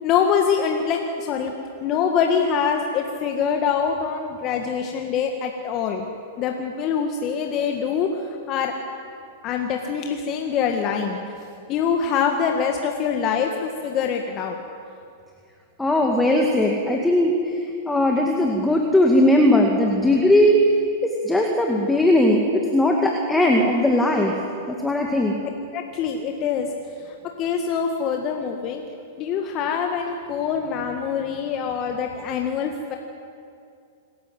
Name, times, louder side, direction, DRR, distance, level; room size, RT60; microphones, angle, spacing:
voice 1, 0.0-1.5 1.8-6.1 6.4-8.7 9.4-11.2 11.7-14.6 25.7-26.7 27.0-28.8 29.2-33.0, left 7 dB, 40° left, 3 dB, 1.8 m, -24 dB
voice 2, 15.8-17.4 17.9-20.6 21.0-24.3 24.7-25.4, left 1 dB, 5° left, 1 dB, 2.2 m, -19 dB
27.0 x 14.0 x 7.8 m, 2.5 s
hypercardioid pair, 105°, 0 cm